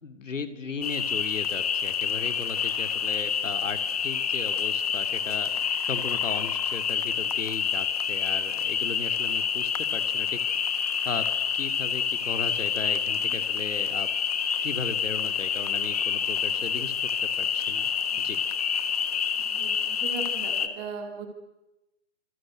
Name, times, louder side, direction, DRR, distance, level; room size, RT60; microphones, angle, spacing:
voice 1, 0.0-5.5 5.8-10.4 11.0-11.2 11.5-14.1 14.6-16.9 17.4-17.9 18.2-18.4, left 5 dB, 80° left, 10 dB, 3.1 m, -36 dB
sound 1, 0.8-20.7, left 7 dB, 30° left, 1.6 m, -28 dB
voice 2, 19.4-21.3, right 5 dB, 10° right, 5 dB, 2.3 m, -39 dB
27.5 x 26.0 x 7.9 m, 0.98 s
hypercardioid pair, 170°, 37 cm